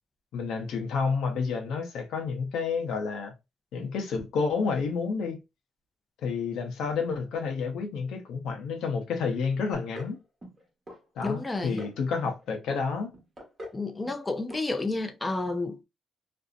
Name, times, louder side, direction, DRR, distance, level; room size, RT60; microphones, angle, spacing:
voice 1, 0.3-3.3 3.7-5.4 6.2-10.2 11.2-13.1, left 5 dB, 80° left, 0.7 m, -30 dB
sound 1, 9.7-10.2 10.4-11.0 11.3-12.0 12.2-12.8 13.1-13.8 14.0-14.3 14.5-14.6 15.0-15.1, left 1 dB, 25° right, 1.0 m, -43 dB
voice 2, 11.2-11.8 13.7-15.8, left 2 dB, 20° left, 0.4 m, -30 dB
2.6 x 2.0 x 2.4 m
cardioid pair, 90°, 0 cm